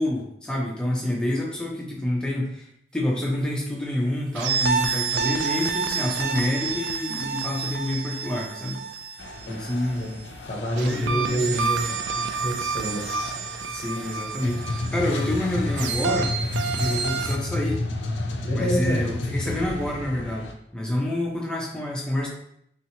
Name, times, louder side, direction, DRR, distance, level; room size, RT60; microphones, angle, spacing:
voice 1, 0.0-2.7 2.9-8.8 9.5-10.0 10.8-11.7 13.7-16.3 16.8-17.8 18.5-20.5 20.7-22.3, left 1 dB, 5° left, -3 dB, 0.6 m, -27 dB
sound 1, 4.3-9.9 10.8-17.4, right 5 dB, 70° right, 0.3 m, -29 dB
sound 2, 9.2-20.5, left 2 dB, 75° left, 0.4 m, -31 dB
voice 2, 10.5-11.8 12.1-13.3 18.4-19.0, equal, 40° left, -1 dB, 0.8 m, -28 dB
3.2 x 2.8 x 2.8 m, 0.71 s
head